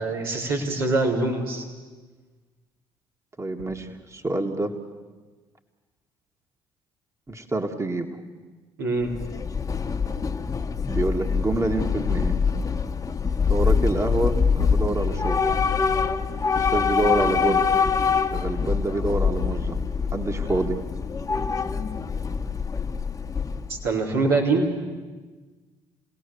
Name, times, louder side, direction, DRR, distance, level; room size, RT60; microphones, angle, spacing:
voice 1, 0.0-1.7 8.8-9.2 23.7-24.7, right 3 dB, 85° right, -4 dB, 3.9 m, -24 dB
voice 2, 3.4-4.8 7.3-8.1 10.9-12.4 13.5-15.4 16.6-17.7 18.3-19.8 20.1-20.8, right 2 dB, 25° right, 4 dB, 1.9 m, -27 dB
Train / Subway metro underground, 9.0-23.9, left 5 dB, 30° left, 1.4 m, -24 dB
29.0 x 18.5 x 7.0 m, 1.3 s
hypercardioid pair, 50°, 12 cm